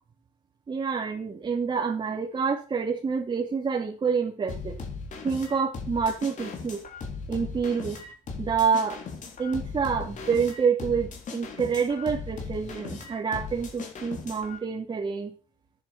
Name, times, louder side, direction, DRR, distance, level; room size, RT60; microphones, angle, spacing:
voice 1, 0.7-4.8 5.2-6.8 7.3-8.0 8.4-9.0 9.4-15.3, right 5 dB, 30° right, -2 dB, 2.6 m, -27 dB
sound 1, 4.5-14.6, left 4 dB, 50° left, 3.8 m, -38 dB
11.0 x 10.0 x 6.0 m, 0.37 s
cardioid pair, 110°, 17 cm